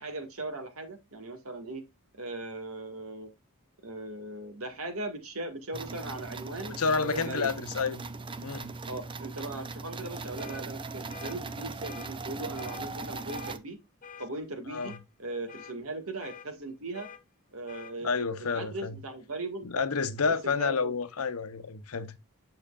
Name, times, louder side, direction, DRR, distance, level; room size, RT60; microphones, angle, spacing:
voice 1, 0.0-1.8 2.1-3.3 3.8-6.8 7.0-7.5 8.9-13.8 14.2-17.1 17.5-19.8 20.4-20.9, right 2 dB, 70° right, 1.9 m, -38 dB
sound 1, 5.7-13.6, right 3 dB, 20° right, 0.5 m, -39 dB
voice 2, 6.7-8.0 8.4-8.7 14.7-15.0 18.0-19.0 19.6-22.2, left 5 dB, 75° left, 0.8 m, -30 dB
sound 2, 10.4-10.6 11.1-11.4 11.8-12.1 12.6-12.8 13.3-13.6 14.0-14.3 14.7-15.0 15.5-15.7 16.2-16.5 16.9-17.2 17.7-17.9, left 7 dB, 35° left, 0.8 m, -47 dB
8.8 x 6.3 x 2.4 m
head